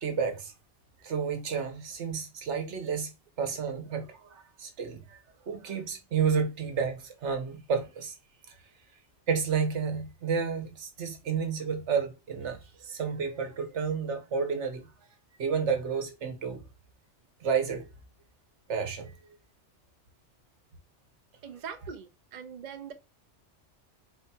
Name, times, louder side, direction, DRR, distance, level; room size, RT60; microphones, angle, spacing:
voice 1, 0.0-0.5 1.0-3.1 3.4-5.2 5.5-8.2 8.5-8.6 9.3-14.9 15.4-16.6 17.4-17.9 18.7-19.1, right 6 dB, 75° right, 1.2 m, -31 dB
voice 2, 21.4-22.9, right 7 dB, 45° right, 0.6 m, -42 dB
4.3 x 4.2 x 2.3 m
omnidirectional pair, 1.2 m